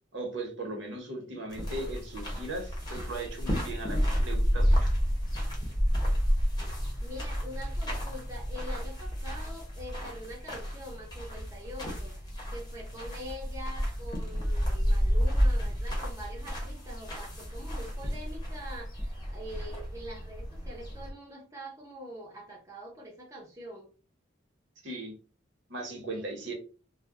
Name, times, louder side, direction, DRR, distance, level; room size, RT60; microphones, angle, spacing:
voice 1, 0.1-4.9 24.8-25.1 25.7-26.5, right 2 dB, 75° right, 2 dB, 0.9 m, -38 dB
sound 1, 1.5-21.1, equal, 20° left, 0.7 m, -31 dB
voice 2, 6.6-12.2 12.5-23.9 26.1-26.3, equal, 15° right, -1 dB, 0.6 m, -44 dB
2.1 x 2.0 x 3.5 m, 0.36 s
head